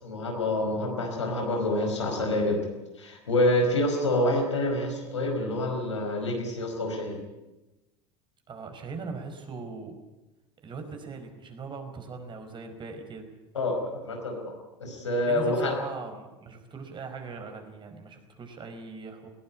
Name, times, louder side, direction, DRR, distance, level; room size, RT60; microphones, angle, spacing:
voice 1, 0.0-2.6 3.0-7.2 13.5-14.5 14.8-15.7, left 1 dB, 90° left, 2 dB, 4.9 m, -27 dB
voice 2, 8.5-10.0 10.6-13.3 15.2-19.3, right 4 dB, 35° right, 5 dB, 4.9 m, -40 dB
20.0 x 16.5 x 9.8 m, 1.0 s
hypercardioid pair, 80°, 15 cm